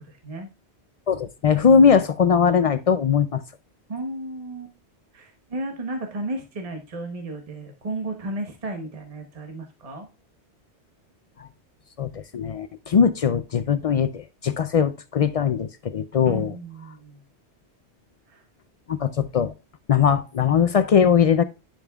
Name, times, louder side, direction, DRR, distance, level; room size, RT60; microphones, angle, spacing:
voice 1, 0.1-0.5 3.9-4.7 5.1-10.1 16.2-17.2 18.3-18.4, right 2 dB, 35° right, 1.1 m, -34 dB
voice 2, 1.1-3.4 12.0-16.5 18.9-19.5 19.9-21.4, left 7 dB, 65° left, 0.3 m, -20 dB
10.5 x 5.3 x 2.3 m
omnidirectional pair, 1.1 m